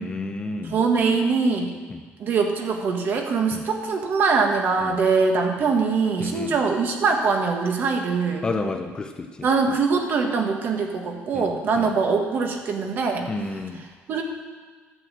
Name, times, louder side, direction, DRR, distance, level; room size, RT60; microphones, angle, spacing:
voice 1, 0.0-0.8 3.5-3.6 4.8-4.9 6.2-6.6 8.4-9.3 11.3-11.9 13.3-13.8, left 3 dB, 20° left, 6 dB, 0.6 m, -30 dB
voice 2, 0.6-1.7 2.2-8.5 9.4-13.3 14.1-14.2, right 4 dB, 45° right, 3 dB, 1.5 m, -23 dB
12.0 x 6.3 x 7.4 m, 1.5 s
cardioid pair, 165°, 5 cm